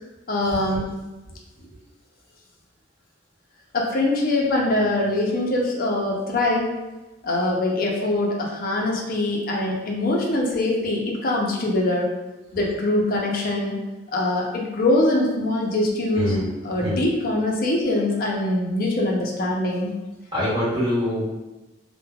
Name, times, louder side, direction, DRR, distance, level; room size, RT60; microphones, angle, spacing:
voice 1, 0.3-0.9 3.7-6.8 7.2-12.1 12.5-13.8 14.1-16.4 16.6-19.9, left 2 dB, 50° left, -2 dB, 0.5 m, -23 dB
voice 2, 16.1-16.4 16.8-17.0 20.3-21.2, left 1 dB, 25° right, -13 dB, 1.4 m, -25 dB
3.1 x 2.1 x 2.2 m, 1.1 s
head